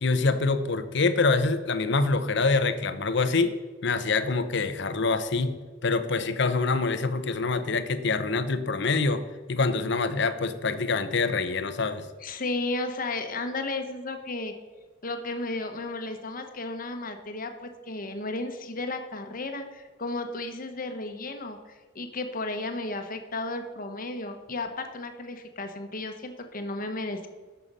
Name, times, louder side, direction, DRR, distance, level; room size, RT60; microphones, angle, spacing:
voice 1, 0.0-3.6 3.8-12.1, left 3 dB, 65° left, 11 dB, 0.8 m, -25 dB
voice 2, 12.2-14.5 15.0-21.6 21.9-27.3, left 2 dB, 50° left, 6 dB, 1.2 m, -33 dB
11.0 x 6.9 x 5.5 m, 1.4 s
head